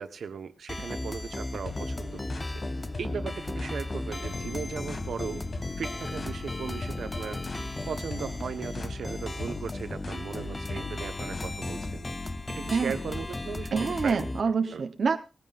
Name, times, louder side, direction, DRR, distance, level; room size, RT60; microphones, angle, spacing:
voice 1, 0.0-2.4 3.0-5.4 5.8-7.4 7.9-12.1 12.5-14.2 14.7-14.8, right 6 dB, 90° right, 9 dB, 1.1 m, -37 dB
sound 1, 0.7-14.4, left 2 dB, 20° left, 0.7 m, -36 dB
sound 2, 1.7-12.0, left 3 dB, 45° left, 2.0 m, -40 dB
voice 2, 13.7-15.2, right 5 dB, 60° right, 6 dB, 0.9 m, -26 dB
19.0 x 15.0 x 2.5 m, 0.31 s
wide cardioid pair, 145°, 0 cm